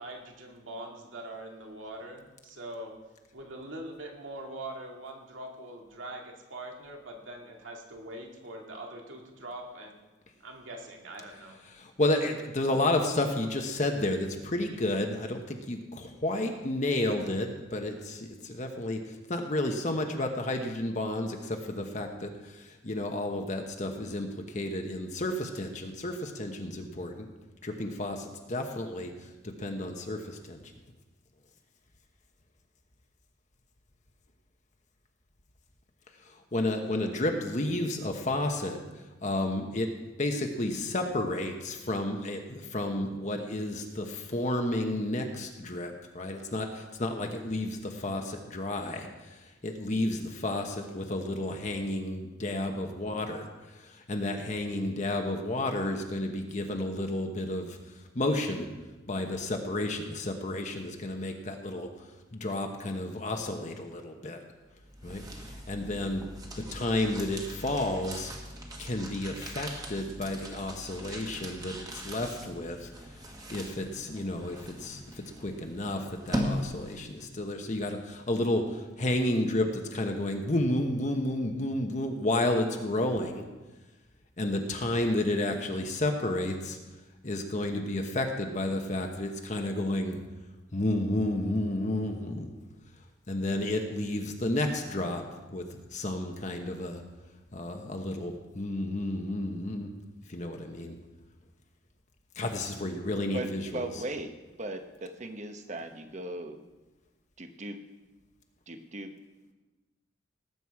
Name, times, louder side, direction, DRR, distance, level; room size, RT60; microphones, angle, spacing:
voice 1, 0.0-2.9 3.3-10.0 10.4-11.6, right 1 dB, 80° right, 0 dB, 2.2 m, -43 dB
voice 2, 11.4-27.3 27.6-30.6 36.2-39.9 40.2-58.7 59.1-64.4 65.0-65.2 65.7-66.3 66.5-68.3 68.8-83.4 84.4-86.8 87.2-90.2 90.7-92.5 93.3-95.2 95.5-97.0 97.5-99.9 100.3-101.0 102.3-104.0, left 1 dB, 40° left, 3 dB, 1.0 m, -31 dB
sound 1, 64.7-77.2, equal, 20° right, 1.5 m, -40 dB
voice 3, 103.3-104.3 104.6-106.6 107.4-107.8 108.7-109.1, right 2 dB, 35° right, 7 dB, 1.0 m, -38 dB
18.5 x 8.1 x 4.7 m, 1.1 s
head